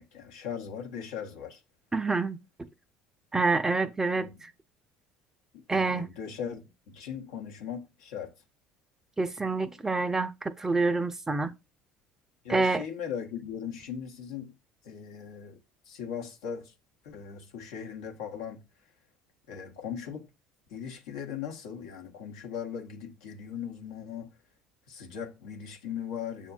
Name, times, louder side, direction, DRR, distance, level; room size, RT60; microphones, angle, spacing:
voice 1, 0.0-1.6 4.2-4.5 5.5-8.3 12.4-14.6 14.8-15.6 15.9-16.7 17.0-18.6 19.5-20.3 20.7-24.3 24.9-26.5, left 7 dB, 80° left, 0.9 m, -39 dB
voice 2, 1.9-2.4 3.3-4.5 5.7-6.1 9.2-11.5 12.5-12.8, right 3 dB, 15° right, 0.5 m, -27 dB
6.9 x 2.3 x 2.3 m
hypercardioid pair, 70°, 3 cm